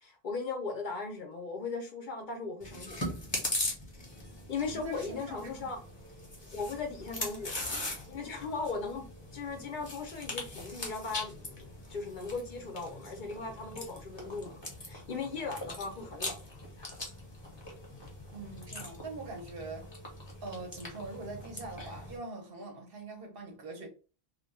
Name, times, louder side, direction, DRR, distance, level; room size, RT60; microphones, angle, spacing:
voice 1, 0.0-3.0 4.5-5.8 6.5-7.6 8.1-9.1 9.3-14.6 14.8-16.4, left 4 dB, 55° left, 0.7 m, -38 dB
Chewing mastication, 2.6-22.2, left 2 dB, 30° left, 0.8 m, -41 dB
voice 2, 4.7-5.7 18.3-19.9 20.4-23.9, right 2 dB, 65° right, 1.0 m, -43 dB
2.4 x 2.2 x 3.1 m
omnidirectional pair, 1.0 m